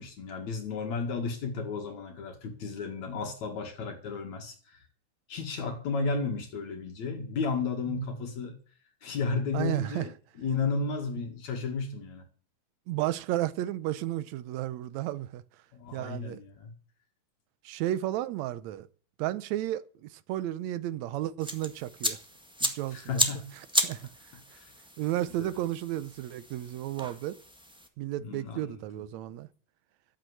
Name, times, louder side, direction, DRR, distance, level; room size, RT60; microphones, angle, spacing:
voice 1, 0.0-4.8 5.3-8.5 9.0-10.1 10.4-12.3 15.7-16.7 22.9-23.5 24.0-24.1 24.5-24.7 25.4-25.6 28.2-28.8, left 4 dB, 70° left, 3.3 m, -33 dB
voice 2, 9.5-10.1 12.9-15.4 15.9-16.4 17.7-18.9 19.2-22.2 22.6-23.2 23.8-24.1 25.0-27.4 28.0-29.5, right 14 dB, 75° right, 2.0 m, -33 dB
sound 1, 21.4-27.9, equal, 5° right, 0.8 m, -34 dB
13.0 x 9.0 x 7.9 m
omnidirectional pair, 3.3 m